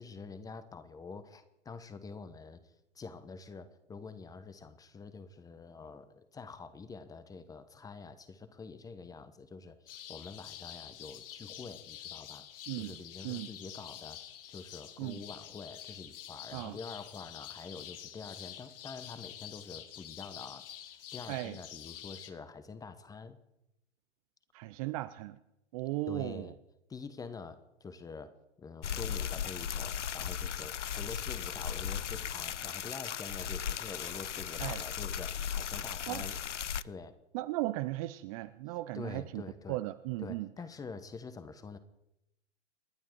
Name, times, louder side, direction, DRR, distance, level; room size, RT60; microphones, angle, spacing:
voice 1, 0.0-2.6 2.9-23.4 26.1-26.5 26.9-36.4 36.8-37.2 38.9-39.8 40.2-41.8, left 4 dB, 10° left, 12 dB, 1.1 m, -46 dB
sound 1, 9.9-22.3, left 11 dB, 50° left, 1.6 m, -47 dB
voice 2, 12.7-13.0 13.2-13.5 15.0-15.2 16.5-16.8 21.3-21.6 24.5-25.4 25.7-26.5 34.6-34.8 36.1-36.3 37.3-39.4 39.7-40.5, right 18 dB, 30° right, 13 dB, 0.6 m, -36 dB
sound 2, 28.8-36.8, left 8 dB, 85° left, 0.5 m, -37 dB
29.0 x 11.0 x 4.6 m, 0.87 s
figure-of-eight pair, 115°, 35 cm